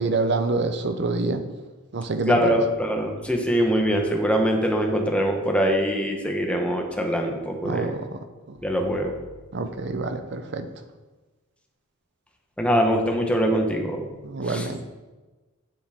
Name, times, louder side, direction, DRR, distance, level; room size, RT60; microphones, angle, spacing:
voice 1, 0.0-1.4 1.9-2.6 7.6-8.6 9.5-10.7 14.2-14.8, right 3 dB, 55° right, 8 dB, 0.6 m, -26 dB
voice 2, 2.3-7.9 8.6-9.1 12.6-14.0 14.4-14.7, equal, 5° left, 2 dB, 0.9 m, -23 dB
7.3 x 7.2 x 3.5 m, 1.2 s
head